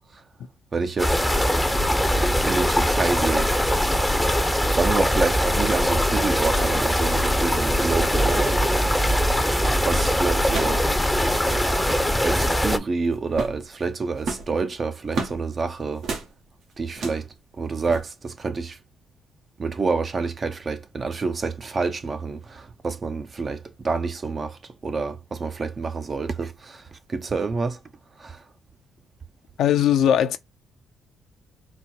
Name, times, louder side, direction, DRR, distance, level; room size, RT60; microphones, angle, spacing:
voice 1, 0.7-1.2 2.5-3.5 4.7-8.6 9.9-10.8 12.2-16.0 16.8-17.3 17.6-18.8 19.6-27.8 28.2-28.4, right 4 dB, 40° right, 0.6 m, -28 dB
sound 1, 1.0-12.8, equal, 5° left, 0.6 m, -21 dB
sound 2, 10.4-10.9 11.1-11.2 11.4-11.7 12.2-12.7 13.3-13.6 14.2-15.4 16.0-16.3 16.9-17.3 17.8-18.0, right 4 dB, 75° right, 1.4 m, -32 dB
voice 2, 29.6-30.4, left 10 dB, 75° left, 0.6 m, -19 dB
4.0 x 2.1 x 4.4 m
cardioid pair, 90°, 0 cm